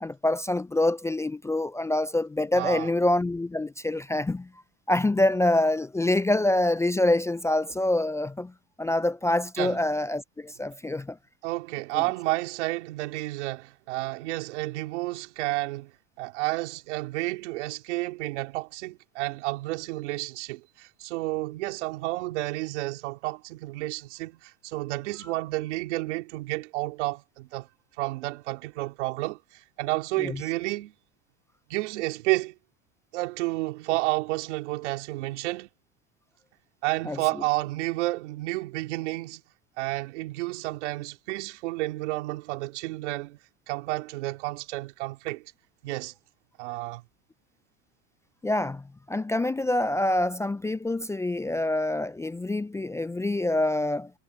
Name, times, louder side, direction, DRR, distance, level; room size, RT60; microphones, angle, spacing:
voice 1, 0.0-4.5 4.9-8.5 8.8-11.2 11.9-12.0 30.2-30.4 37.0-37.2 48.4-54.1, left 1 dB, 10° left, 0.5 m, -26 dB
voice 2, 2.6-2.9 9.6-9.8 11.4-15.9 16.2-27.7 28.0-30.9 31.7-32.5 33.1-35.7 36.8-39.4 39.8-43.4 43.7-45.4 45.8-46.1 46.6-47.0, right 20 dB, 85° right, 3.5 m, -31 dB
supercardioid pair, 110°, 34 cm